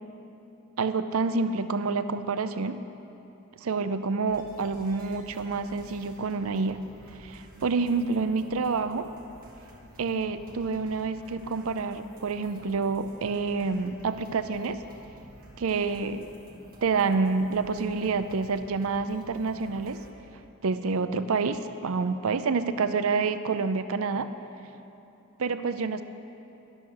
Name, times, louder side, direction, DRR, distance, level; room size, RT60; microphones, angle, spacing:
voice 1, 0.8-2.8 3.6-6.8 7.2-9.1 10.0-14.8 15.6-16.3 16.8-20.0 20.6-24.3 25.4-26.0, right 4 dB, 65° right, 11 dB, 0.5 m, -28 dB
sound 1, 4.3-20.1, equal, 40° right, 1.8 m, -51 dB
11.5 x 11.5 x 6.5 m, 3.0 s
head